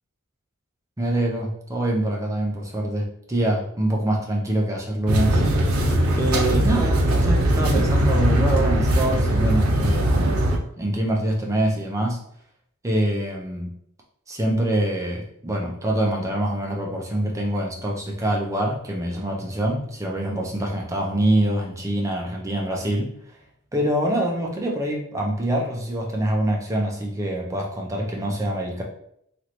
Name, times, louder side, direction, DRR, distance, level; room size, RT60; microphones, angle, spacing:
voice 1, 1.0-5.4 6.2-10.2 10.8-12.2 12.8-13.7 14.3-23.1 23.7-28.8, right 1 dB, 15° right, -1 dB, 0.4 m, -25 dB
sound 1, 5.1-10.6, right 1 dB, 85° right, 0.5 m, -20 dB
3.1 x 2.4 x 2.8 m, 0.72 s
head